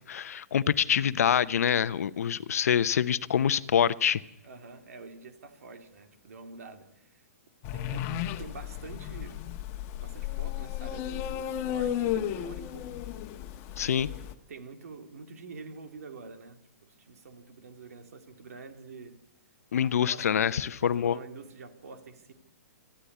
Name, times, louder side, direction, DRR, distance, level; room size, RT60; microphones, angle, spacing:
voice 1, 0.1-4.2 13.8-14.1 19.7-21.2, left 8 dB, 75° left, 0.9 m, -25 dB
voice 2, 4.4-7.2 7.7-9.5 10.0-12.9 13.8-19.2 19.8-22.3, right 4 dB, 75° right, 2.9 m, -47 dB
sound 1, 7.6-14.3, left 11 dB, 35° left, 1.4 m, -34 dB
22.5 x 14.5 x 8.2 m
hypercardioid pair, 140°, 8 cm